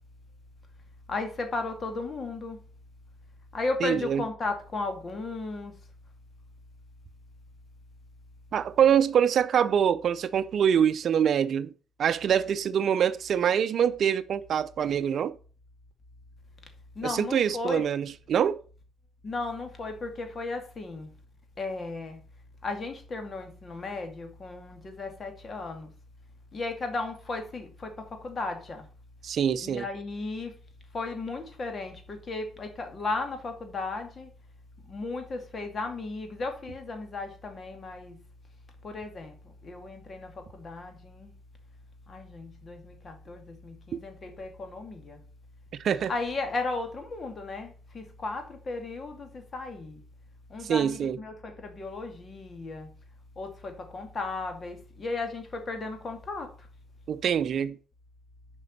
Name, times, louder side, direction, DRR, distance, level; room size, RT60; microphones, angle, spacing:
voice 1, 1.1-2.6 3.5-5.7 16.9-17.8 19.2-21.1 21.6-22.2 22.6-25.9 26.5-28.9 29.6-30.6 30.9-34.3 34.8-38.2 38.8-41.3 42.1-45.2 46.1-50.0 50.5-52.9 53.4-56.7, left 3 dB, 40° left, 2.3 m, -35 dB
voice 2, 3.8-4.2 8.5-11.7 12.0-15.4 17.0-18.6 29.2-29.9 43.9-44.0 45.7-46.1 50.6-51.2 57.1-57.8, right 8 dB, 60° right, 0.5 m, -25 dB
6.9 x 5.3 x 6.5 m
cardioid pair, 90°, 0 cm